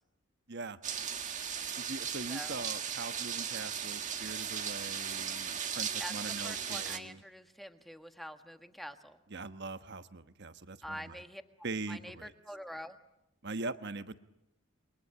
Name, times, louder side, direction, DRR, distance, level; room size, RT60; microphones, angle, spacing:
sound 1, 0.8-7.0, right 8 dB, 35° right, 1.5 m, -37 dB
voice 1, 1.8-7.2 9.3-11.1 11.6-12.3 13.4-14.2, right 3 dB, 55° right, 10 dB, 1.2 m, -42 dB
voice 2, 2.3-2.7 6.0-9.2 10.8-11.4 11.9-13.0, equal, ahead, 7 dB, 1.5 m, -46 dB
28.0 x 23.0 x 8.7 m, 0.88 s
head